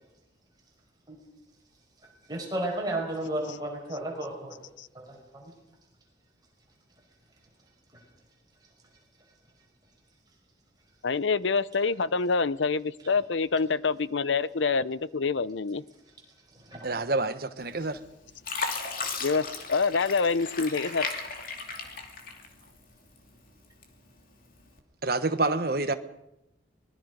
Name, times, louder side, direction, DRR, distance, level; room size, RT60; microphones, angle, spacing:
voice 1, 2.3-4.6 4.9-5.5 16.5-17.0, right 1 dB, 20° right, 5.1 m, -33 dB
voice 2, 11.0-15.8 19.2-21.1, left 4 dB, 80° left, 0.7 m, -26 dB
voice 3, 16.8-18.0 25.0-25.9, right 3 dB, 50° right, 1.2 m, -27 dB
Fill (with liquid), 17.7-18.1 18.4-22.8 23.3-24.1 24.6-24.8, left 4 dB, 45° left, 2.7 m, -35 dB
24.5 x 20.5 x 5.2 m
head